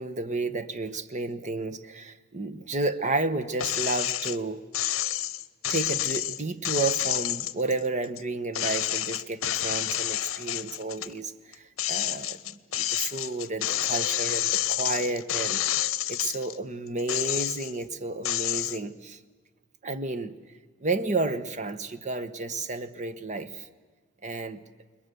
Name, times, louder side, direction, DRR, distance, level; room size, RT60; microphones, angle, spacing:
voice 1, 0.0-4.6 5.7-15.6 16.1-19.2 19.8-20.3 20.8-23.7 24.2-24.6, right 3 dB, 35° right, 11 dB, 1.1 m, -31 dB
sound 1, 3.6-4.4 4.7-8.2 8.5-11.1 11.5-16.6 17.0-17.8 18.2-18.8, left 13 dB, 85° left, 0.8 m, -29 dB
29.0 x 21.5 x 6.9 m, 1.4 s
head